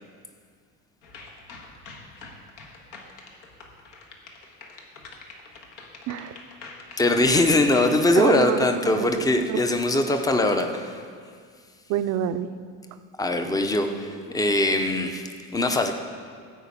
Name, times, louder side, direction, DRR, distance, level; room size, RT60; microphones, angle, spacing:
sound 1, 1.0-8.0, left 3 dB, 70° left, 1.6 m, -45 dB
voice 1, 6.1-6.4 8.1-9.6 11.9-12.6, right 10 dB, 60° right, 11 dB, 0.6 m, -27 dB
voice 2, 7.0-11.0 13.2-15.9, left 2 dB, 10° left, 6 dB, 0.7 m, -22 dB
14.5 x 5.1 x 8.4 m, 2.1 s
cardioid pair, 155°, 33 cm